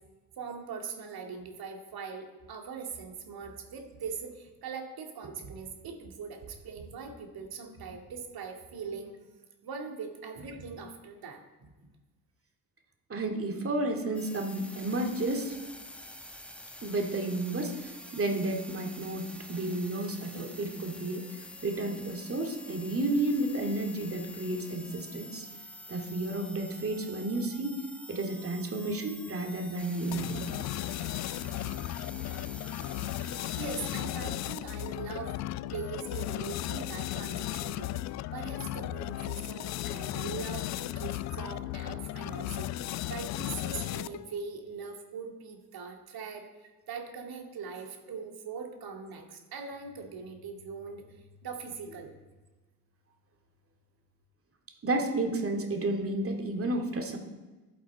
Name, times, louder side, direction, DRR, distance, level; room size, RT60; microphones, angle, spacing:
voice 1, 0.4-9.1 9.6-11.9 33.6-35.3 35.7-37.9 38.3-52.1, right 5 dB, 50° right, 3 dB, 2.2 m, -41 dB
voice 2, 13.1-15.6 16.8-21.2 21.6-25.5 25.9-27.8 28.1-30.5 54.8-57.2, right 2 dB, 30° right, 3 dB, 2.3 m, -32 dB
sound 1, 14.1-34.0, left 1 dB, ahead, 1.3 m, -47 dB
sound 2, 30.1-44.3, left 14 dB, 40° left, 0.4 m, -35 dB
11.5 x 8.5 x 4.3 m, 1.2 s
figure-of-eight pair, 45°, 47 cm